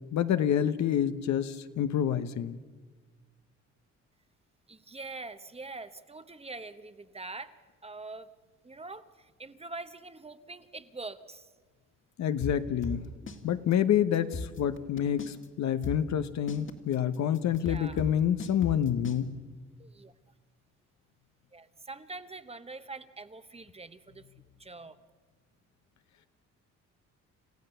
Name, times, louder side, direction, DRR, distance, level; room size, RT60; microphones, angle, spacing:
voice 1, 0.1-2.6 12.2-13.1 13.4-19.3, left 9 dB, 65° left, 11 dB, 1.0 m, -28 dB
voice 2, 4.7-7.5 7.8-8.3 8.6-11.5 17.6-18.0 19.8-20.1 21.5-24.3 24.6-25.0, right 3 dB, 20° right, 11 dB, 1.0 m, -44 dB
sound 1, 12.4-13.4 13.7-13.8 14.1-15.5 15.8-19.2, left 3 dB, 40° left, 2.0 m, -37 dB
28.0 x 15.0 x 6.9 m, 1.4 s
cardioid pair, 90°, 30 cm